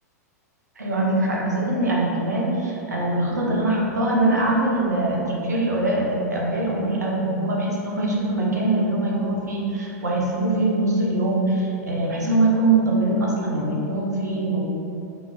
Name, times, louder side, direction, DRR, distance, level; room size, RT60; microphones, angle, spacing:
voice 1, 0.8-14.6, right 2 dB, 70° right, -3 dB, 0.8 m, -22 dB
5.0 x 3.5 x 2.3 m, 2.8 s
figure-of-eight pair, 100°, 9 cm